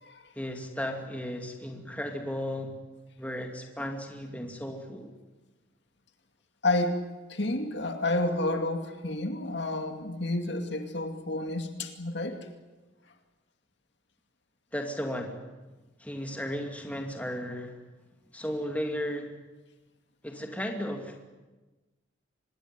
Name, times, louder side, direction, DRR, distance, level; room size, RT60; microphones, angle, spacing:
voice 1, 0.4-2.7 3.2-5.1 14.7-15.4 16.0-17.7 18.3-19.3 20.2-21.2, equal, 5° left, 3 dB, 2.6 m, -35 dB
voice 2, 6.6-7.0 7.3-12.5, left 2 dB, 55° left, 6 dB, 2.4 m, -30 dB
25.5 x 21.0 x 9.5 m, 1.2 s
head